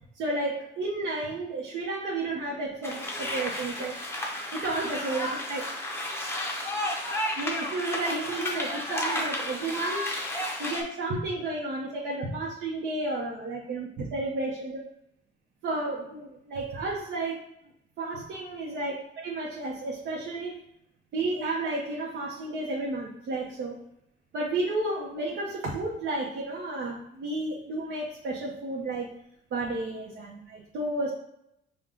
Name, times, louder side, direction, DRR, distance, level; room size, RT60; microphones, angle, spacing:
voice 1, 0.2-4.0 4.5-5.7 7.4-10.1 10.6-14.9 15.6-17.4 18.0-20.6 21.1-23.8 24.3-29.1 29.5-31.1, right 2 dB, 60° right, -3 dB, 0.8 m, -32 dB
sound 1, 2.8-10.8, left 1 dB, 10° left, 0.6 m, -32 dB
5.3 x 2.2 x 3.7 m, 0.76 s
cardioid pair, 155°, 21 cm